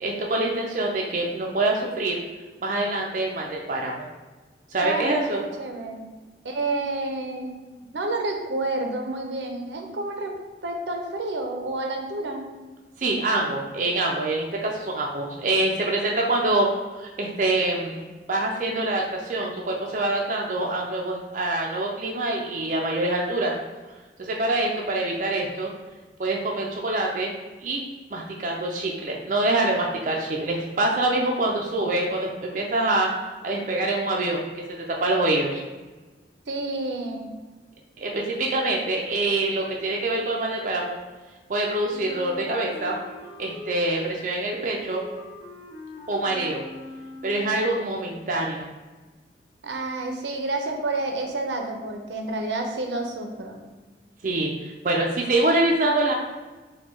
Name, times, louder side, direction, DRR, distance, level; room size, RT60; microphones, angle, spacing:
voice 1, 0.0-2.2 2.6-4.1 4.7-5.4 13.0-18.0 18.3-23.5 24.2-25.7 26.2-27.3 27.6-27.8 28.1-33.1 33.4-35.6 38.0-41.0 41.5-43.0 43.4-45.0 46.1-46.6 47.2-48.7 54.2-56.1, right 2 dB, 45° right, -1 dB, 0.5 m, -25 dB
voice 2, 4.8-6.1 6.4-7.6 7.9-10.3 10.6-12.5 31.3-31.4 36.5-37.3 49.6-53.6, right 2 dB, 80° right, 3 dB, 0.6 m, -29 dB
Wind instrument woodwind instrument, 41.9-47.7, left 2 dB, 35° left, 0.6 m, -42 dB
4.3 x 2.3 x 4.3 m, 1.2 s
head